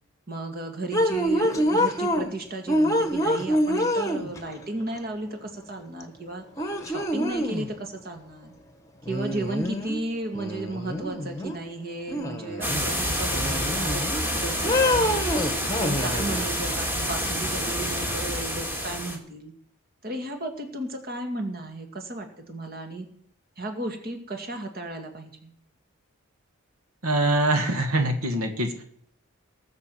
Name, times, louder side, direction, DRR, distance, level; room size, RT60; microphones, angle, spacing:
voice 1, 0.3-8.5 9.1-15.5 15.8-19.5 20.0-23.1 23.6-25.5, right 2 dB, 45° right, 5 dB, 2.2 m, -34 dB
sound 1, 0.9-2.3 2.7-4.6 6.0-6.1 6.6-7.7 9.0-10.0 10.3-11.6 12.1-12.9 13.3-14.2 14.6-16.4, equal, 15° left, 1.3 m, -26 dB
sound 2, 12.6-19.2, equal, 10° right, 2.2 m, -28 dB
voice 2, 27.0-28.8, right 1 dB, 90° right, 5 dB, 1.9 m, -24 dB
18.5 x 6.5 x 7.8 m, 0.64 s
head